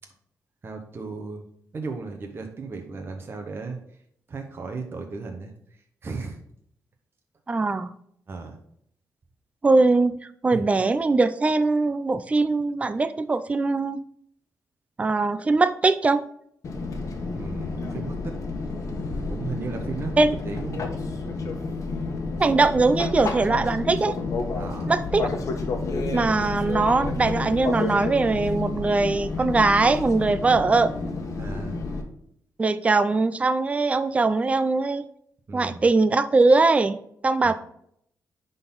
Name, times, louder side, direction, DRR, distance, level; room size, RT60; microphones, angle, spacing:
voice 1, 0.6-1.5 1.7-3.8 4.3-5.5 6.0-6.4 8.3-8.6 10.5-10.6 17.3-18.4 18.8-20.9 24.6-25.0 31.4-31.8 35.5-35.9 37.4-37.5, right 4 dB, 35° right, 3 dB, 1.1 m, -35 dB
voice 2, 7.5-7.9 9.6-10.2 10.4-14.0 15.0-16.2 20.2-20.4 22.4-24.2 24.9-25.3 26.1-30.9 32.6-35.0 35.5-37.0 37.2-37.5, right 3 dB, 20° right, 12 dB, 0.4 m, -21 dB
Fixed-wing aircraft airplane, 16.6-32.0, left 3 dB, 55° left, 1.3 m, -30 dB
10.0 x 4.0 x 3.9 m, 0.69 s
wide cardioid pair, 140°, 7 cm